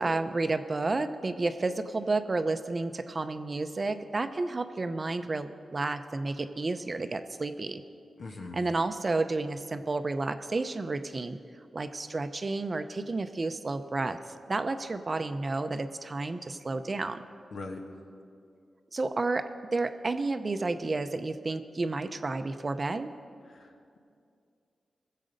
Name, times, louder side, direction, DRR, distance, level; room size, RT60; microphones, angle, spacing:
voice 1, 0.0-7.8 8.5-11.4 11.7-14.2 14.5-17.2 18.9-23.1, right 3 dB, 35° right, 9 dB, 0.6 m, -31 dB
voice 2, 8.2-8.6 17.5-17.9 23.4-24.0, left 3 dB, 70° left, 3 dB, 1.5 m, -41 dB
20.0 x 7.5 x 5.2 m, 2.4 s
cardioid pair, 85°, 0 cm